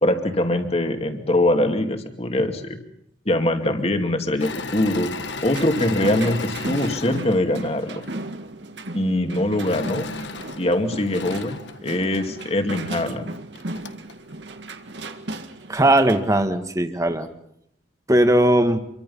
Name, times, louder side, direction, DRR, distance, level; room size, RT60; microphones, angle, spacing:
voice 1, 0.0-2.8 3.3-5.1 5.4-8.0 8.9-10.1 10.6-13.3, left 1 dB, 35° left, 5 dB, 2.5 m, -22 dB
Engine / Mechanisms, 4.4-8.2 9.6-12.5 13.2-13.3 13.5-14.1, left 3 dB, 75° left, 1.6 m, -35 dB
sound 1, 5.5-16.4, right 2 dB, 75° right, 2.0 m, -36 dB
voice 2, 15.7-17.3 18.1-18.8, right 1 dB, 20° right, 7 dB, 1.8 m, -18 dB
27.5 x 23.5 x 5.6 m, 0.74 s
head